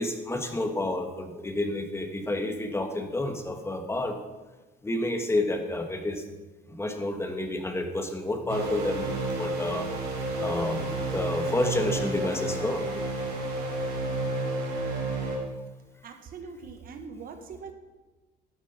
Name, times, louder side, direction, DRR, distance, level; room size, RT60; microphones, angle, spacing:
voice 1, 0.0-4.2 4.8-6.2 6.7-9.9 10.4-12.9, left 1 dB, 15° left, 5 dB, 1.5 m, -30 dB
sound 1, 8.5-15.4, right 2 dB, 85° right, 4.1 m, -31 dB
voice 2, 16.0-17.7, right 5 dB, 60° right, 6 dB, 1.6 m, -42 dB
12.5 x 8.6 x 5.7 m, 1.2 s
cardioid pair, 110°, 17 cm